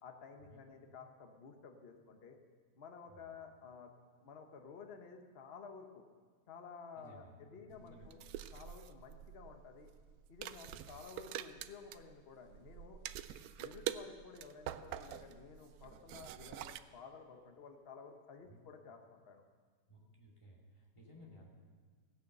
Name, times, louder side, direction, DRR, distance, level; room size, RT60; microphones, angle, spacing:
voice 1, 0.0-2.4 2.7-3.9 4.2-6.0 6.5-8.2 8.5-9.9 10.3-13.0 13.6-19.4, left 5 dB, 40° left, 4 dB, 1.2 m, -53 dB
voice 2, 6.9-8.1 10.7-10.9 18.5-18.6 19.9-21.5, equal, 15° left, -3 dB, 2.7 m, -58 dB
sound 1, 7.7-16.8, right 11 dB, 70° right, 1.0 m, -46 dB
16.5 x 9.5 x 6.6 m, 1.5 s
omnidirectional pair, 1.7 m